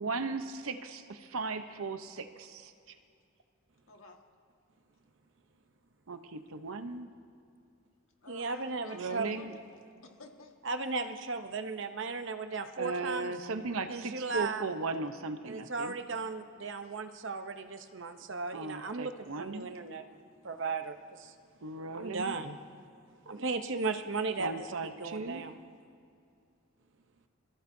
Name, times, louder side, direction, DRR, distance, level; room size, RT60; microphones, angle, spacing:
voice 1, 0.0-2.7 6.1-7.1 8.9-9.5 12.8-15.9 18.5-19.7 21.6-22.4 24.4-25.5, right 3 dB, 85° right, 8 dB, 0.8 m, -37 dB
voice 2, 3.9-4.2 8.2-10.5 16.8-16.9, left 3 dB, 75° left, 2 dB, 1.8 m, -53 dB
voice 3, 8.3-9.3 10.6-13.3 13.9-14.7 15.5-20.0 20.4-21.3 21.9-22.6 23.3-24.5 24.8-25.6, right 4 dB, 60° right, 8 dB, 0.8 m, -36 dB
26.5 x 14.5 x 2.7 m, 2.4 s
head